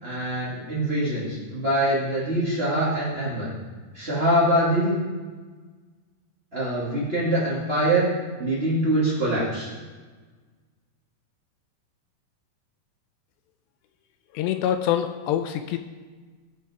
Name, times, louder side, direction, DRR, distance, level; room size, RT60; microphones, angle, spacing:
voice 1, 0.0-3.5 3.9-5.0 6.5-8.1 8.4-9.7, right 1 dB, 50° right, -8 dB, 0.6 m, -24 dB
voice 2, 14.3-15.8, left 10 dB, 85° left, 8 dB, 2.7 m, -25 dB
17.0 x 5.7 x 4.8 m, 1.4 s
omnidirectional pair, 5.2 m